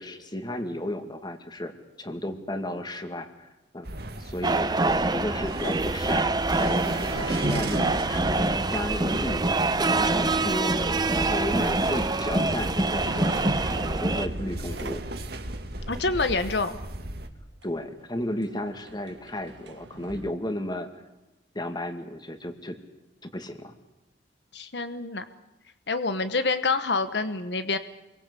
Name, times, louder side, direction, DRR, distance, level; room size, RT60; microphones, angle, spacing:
voice 1, 0.0-1.7 2.0-3.5 3.7-3.9 4.2-6.3 6.6-9.4 9.8-10.8 11.2-15.0 17.6-20.9 21.5-22.8 23.2-23.7, left 1 dB, 25° left, 7 dB, 2.4 m, -33 dB
sound 1, 3.8-17.3, right 1 dB, 60° right, 2.4 m, -36 dB
sound 2, 3.9-4.1 6.2-9.1 11.8-12.0 12.3-15.2 17.6-17.7 18.0-20.3, right 2 dB, 85° right, 1.7 m, -37 dB
sound 3, 4.4-14.3, right 2 dB, 25° right, 0.9 m, -25 dB
voice 2, 15.9-16.8 24.5-25.2 25.9-27.8, left 3 dB, 70° left, 10 dB, 1.1 m, -27 dB
28.0 x 23.0 x 8.3 m, 1.0 s
head